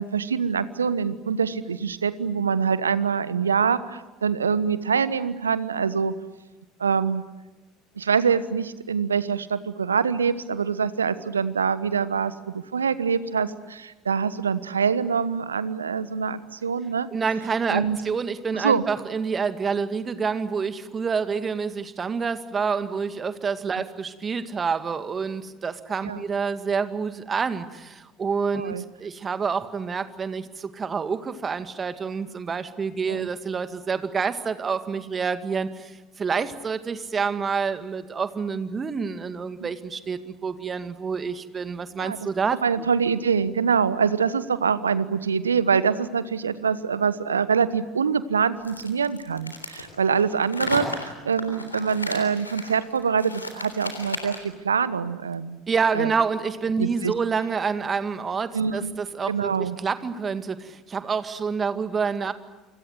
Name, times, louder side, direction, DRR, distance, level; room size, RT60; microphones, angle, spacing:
voice 1, 0.0-6.1 6.8-7.2 8.0-17.1 17.7-18.0 18.5-18.8 26.0-26.2 28.5-28.8 33.1-33.3 39.6-39.7 42.0-42.2 42.6-55.6 55.9-56.1 56.8-57.1 58.5-58.9 59.3-59.8, right 6 dB, 80° right, 16 dB, 1.2 m, -25 dB
voice 2, 17.1-42.9 55.7-62.3, right 5 dB, 30° right, 11 dB, 2.1 m, -28 dB
sound 1, 48.6-54.5, left 2 dB, 85° left, 3.6 m, -34 dB
28.5 x 25.5 x 8.0 m, 1.1 s
figure-of-eight pair, 65°, 0 cm